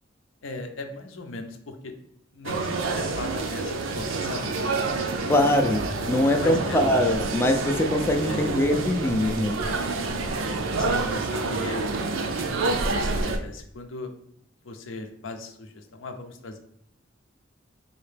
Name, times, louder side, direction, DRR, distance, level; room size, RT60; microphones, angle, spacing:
voice 1, 0.4-1.9 2.3-4.9 5.3-5.7 6.1-7.0 8.2-8.5 10.8-11.9 12.3-12.8 13.1-14.1 14.6-16.6, left 2 dB, 75° left, 6 dB, 0.5 m, -37 dB
sound 1, 2.4-13.4, right 3 dB, 80° right, 0.5 m, -28 dB
voice 2, 5.3-5.8 6.1-9.6, left 1 dB, 10° left, 3 dB, 0.3 m, -22 dB
4.2 x 2.8 x 3.3 m, 0.74 s
head